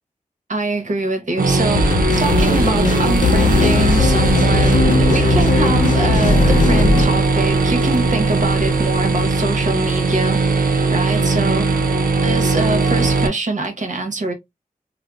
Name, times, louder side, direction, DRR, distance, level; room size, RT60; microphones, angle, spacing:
voice 1, 0.5-1.9 2.2-10.4 10.9-11.7 12.2-14.3, right 2 dB, 60° right, 0.9 m, -23 dB
sound 1, 1.4-13.3, right 3 dB, 90° right, 0.5 m, -18 dB
sound 2, 1.7-7.1, left 4 dB, 65° left, 0.4 m, -18 dB
sound 3, 2.1-9.3, right 2 dB, 35° right, 1.2 m, -30 dB
3.4 x 2.0 x 2.3 m
wide cardioid pair, 80°, 14 cm